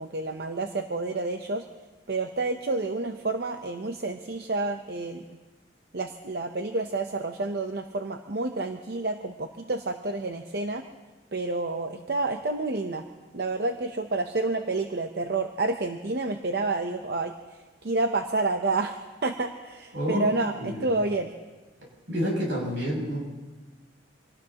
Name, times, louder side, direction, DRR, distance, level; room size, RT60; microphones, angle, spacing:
voice 1, 0.0-1.6 2.1-5.2 5.9-10.9 11.3-13.0 13.3-17.3 17.8-21.3, right 3 dB, 60° right, 6 dB, 0.7 m, -29 dB
voice 2, 19.9-20.3 20.6-20.9 22.1-23.2, equal, 80° right, -2 dB, 7.1 m, -28 dB
26.5 x 18.5 x 2.9 m, 1.2 s
head